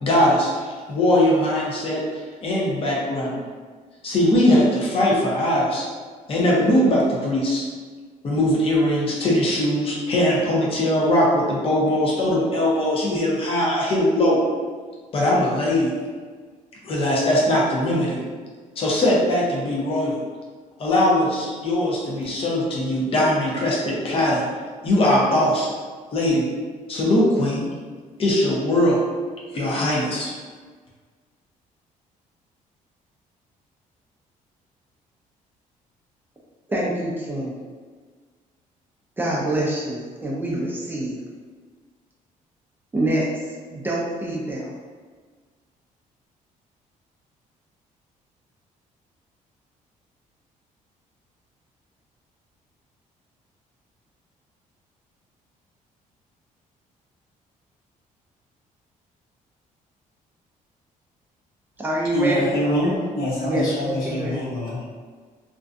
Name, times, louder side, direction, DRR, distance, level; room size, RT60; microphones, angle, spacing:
voice 1, 0.0-3.4 4.0-5.8 6.3-7.7 8.2-14.4 15.1-15.9 16.8-18.2 18.8-20.2 20.8-24.4 24.8-25.7 26.1-26.5 26.9-27.6 28.2-29.0 29.5-30.3, left 1 dB, 40° left, -4 dB, 0.6 m, -20 dB
voice 2, 36.7-37.5 39.2-41.2 42.9-44.7 61.8-62.6 62.8-63.0 63.4-64.5, right 1 dB, 15° right, -4 dB, 0.4 m, -26 dB
voice 3, 62.1-64.8, left 1 dB, 85° left, -7 dB, 0.9 m, -25 dB
2.5 x 2.2 x 2.5 m, 1.5 s
cardioid pair, 140°, 14 cm